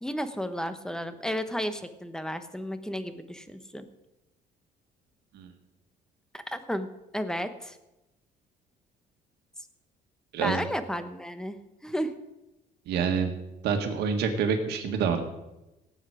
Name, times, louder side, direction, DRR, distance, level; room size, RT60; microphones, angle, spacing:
voice 1, 0.0-3.9 6.3-6.9 7.1-7.8 10.4-12.1, equal, 5° left, 10 dB, 1.0 m, -33 dB
voice 2, 10.3-10.6 12.9-13.3 13.6-15.2, right 6 dB, 75° right, 5 dB, 1.9 m, -27 dB
17.5 x 8.2 x 4.9 m, 0.97 s
cardioid pair, 110°, 17 cm